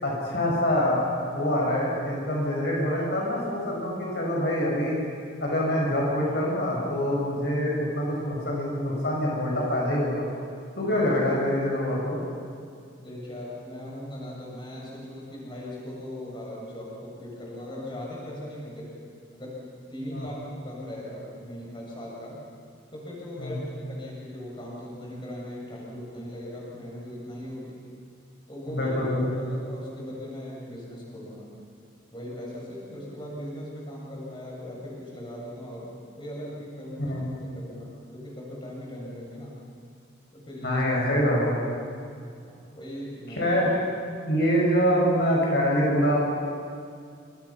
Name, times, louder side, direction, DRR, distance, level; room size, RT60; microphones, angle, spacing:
voice 1, 0.0-1.1 1.3-5.0 5.4-10.2 10.8-12.2 20.1-20.3 23.4-23.6 28.7-29.4 37.0-37.2 40.6-41.6 43.3-43.7 44.2-46.2, equal, 55° left, -3 dB, 6.4 m, -25 dB
voice 2, 13.0-18.9 19.3-19.6 19.9-20.4 20.6-22.4 22.9-27.8 28.5-29.0 29.4-31.6 32.1-35.9 36.2-37.2 37.5-39.6 40.3-40.8 42.7-43.5, left 1 dB, 25° left, -4 dB, 7.4 m, -39 dB
29.0 x 27.5 x 6.0 m, 2.3 s
head